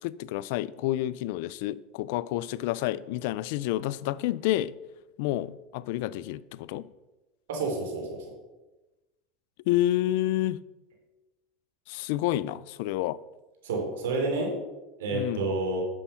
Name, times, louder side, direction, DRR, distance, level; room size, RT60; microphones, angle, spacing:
voice 1, 0.0-4.8 5.2-6.9 9.6-10.6 11.9-13.2 15.1-15.5, left 14 dB, 70° left, 0.4 m, -29 dB
voice 2, 7.5-8.2 13.6-14.5 15.0-15.8, right 3 dB, 85° right, 3.5 m, -29 dB
9.9 x 7.2 x 5.7 m
supercardioid pair, 115°, 0 cm